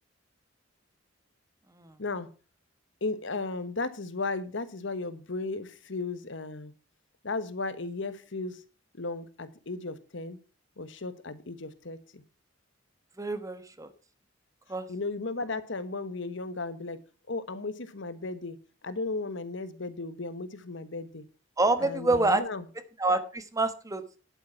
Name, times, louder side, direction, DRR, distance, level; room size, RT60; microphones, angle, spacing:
voice 1, 2.0-2.3 3.0-6.7 7.2-8.6 8.9-10.4 10.8-12.2 14.9-17.0 17.3-18.6 18.8-21.2 21.8-22.7, left 3 dB, 70° left, 13 dB, 1.2 m, -35 dB
voice 2, 13.2-13.9 14.7-14.8 21.6-22.4 23.0-24.0, right 2 dB, 15° right, 11 dB, 1.2 m, -26 dB
10.5 x 8.6 x 5.8 m, 0.34 s
head